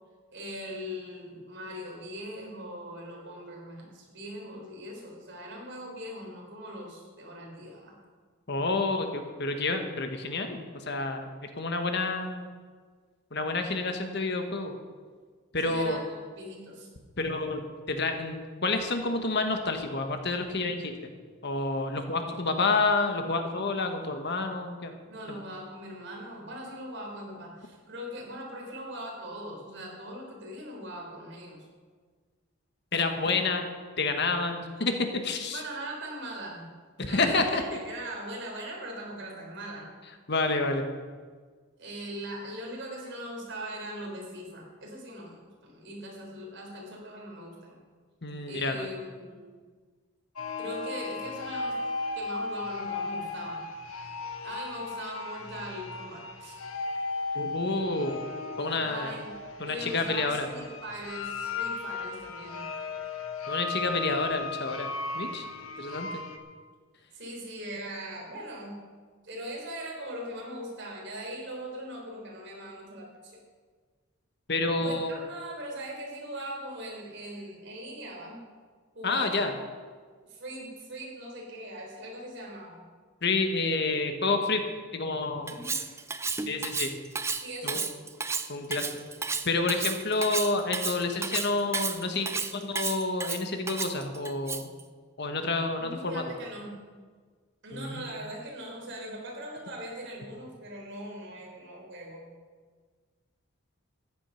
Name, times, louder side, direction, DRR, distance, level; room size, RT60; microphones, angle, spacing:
voice 1, 0.3-8.0 15.6-16.0 16.4-16.9 25.1-31.7 35.5-36.7 37.1-39.9 41.8-47.8 48.5-49.4 50.6-51.8 52.2-53.7 54.4-56.6 58.8-59.4 59.6-62.7 67.1-68.8 69.2-73.4 74.8-78.4 78.9-79.5 80.3-82.8 85.5-85.9 87.4-87.9 95.8-96.7 97.6-102.3, right 1 dB, 55° right, -1 dB, 3.8 m, -40 dB
voice 2, 8.5-12.5 13.3-14.7 15.5-16.0 17.2-21.1 21.4-25.0 25.3-25.4 32.9-35.6 37.0-37.6 40.3-40.9 48.2-48.9 57.3-58.2 58.6-59.1 59.6-60.5 63.5-65.5 65.8-66.2 74.5-75.1 79.0-79.5 83.2-84.6 84.9-85.5 86.5-86.9 87.6-87.8 88.5-89.0 89.4-94.7 95.2-96.2 97.7-98.1, left 3 dB, 50° left, 6 dB, 1.3 m, -29 dB
sound 1, 50.4-66.4, left 3 dB, 75° left, 1.2 m, -36 dB
Cutlery silverware, 85.5-94.8, right 5 dB, 10° right, 0.4 m, -32 dB
14.0 x 10.0 x 5.7 m, 1.5 s
head